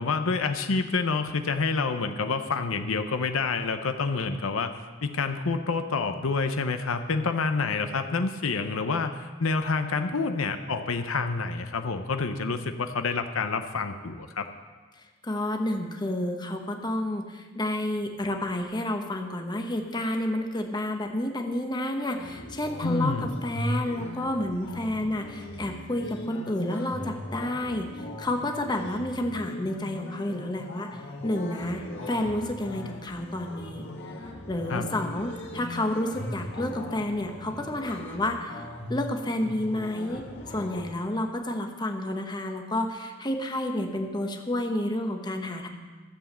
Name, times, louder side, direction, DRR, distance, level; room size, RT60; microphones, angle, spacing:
voice 1, 0.0-4.7 5.0-14.4 22.8-23.3 34.7-34.8, left 4 dB, 80° left, 8 dB, 0.7 m, -28 dB
voice 2, 15.2-30.9 31.2-33.8 34.5-38.6 38.9-40.2 40.5-45.7, left 1 dB, 20° left, 3 dB, 1.1 m, -30 dB
sound 1, 22.1-40.9, left 1 dB, 60° left, 2.1 m, -39 dB
14.5 x 7.2 x 7.4 m, 1.4 s
head